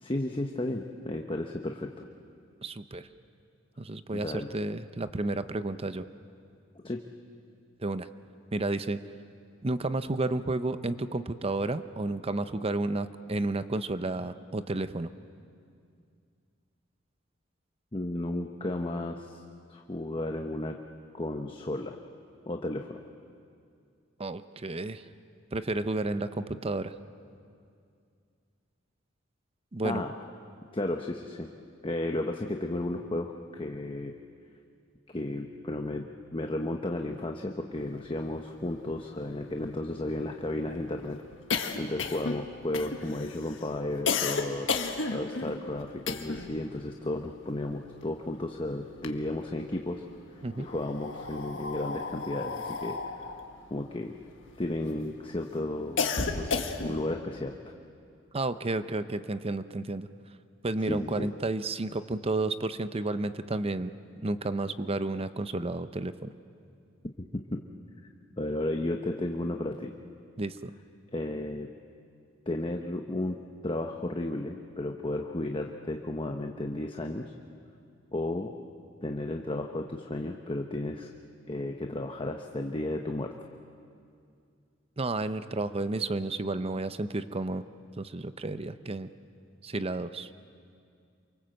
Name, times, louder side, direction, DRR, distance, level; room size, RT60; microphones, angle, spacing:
voice 1, 0.0-2.1 4.1-4.5 6.8-7.0 17.9-19.4 19.7-20.8 21.1-22.0 22.5-23.0 29.8-30.1 30.7-31.5 31.8-34.1 35.1-41.2 41.8-44.7 45.1-50.0 50.6-53.3 53.7-54.2 54.6-56.1 56.3-57.6 60.9-61.3 67.5-67.6 68.4-70.0 71.1-71.7 72.5-73.4 73.6-77.3 78.1-78.5 79.0-81.1 81.5-83.3, left 1 dB, 25° left, 3 dB, 1.0 m, -33 dB
voice 2, 2.6-3.1 3.8-6.0 7.8-8.1 8.5-9.0 9.6-15.1 24.2-25.0 25.5-26.9 29.7-30.0 50.4-50.7 58.3-60.1 60.6-63.9 64.2-66.3 70.4-70.7 85.0-87.6 88.0-89.1 89.6-90.3, right 2 dB, 30° right, 12 dB, 0.7 m, -31 dB
sound 1, 38.4-38.5 38.7-38.8 39.1-46.6 46.9-48.4 48.8-49.7 50.5-55.0 55.4-57.1, left 4 dB, 70° left, 1.6 m, -33 dB
28.0 x 24.5 x 7.8 m, 2.4 s
head